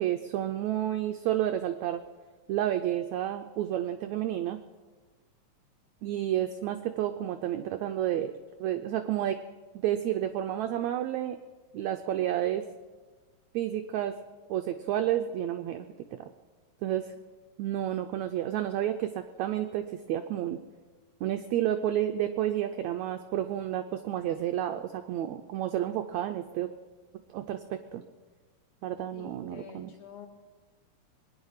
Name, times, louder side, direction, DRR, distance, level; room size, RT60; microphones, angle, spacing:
voice 1, 0.0-2.0 2.5-4.6 6.0-8.3 8.6-9.4 9.7-11.4 11.7-12.6 13.5-14.2 14.5-16.3 16.8-17.1 17.6-20.6 21.2-26.7 27.3-28.0 28.8-29.9, right 12 dB, 80° right, 7 dB, 1.6 m, -30 dB
voice 2, 29.1-30.3, left 7 dB, 55° left, 2 dB, 3.0 m, -48 dB
22.0 x 9.7 x 5.6 m, 1.4 s
omnidirectional pair, 3.9 m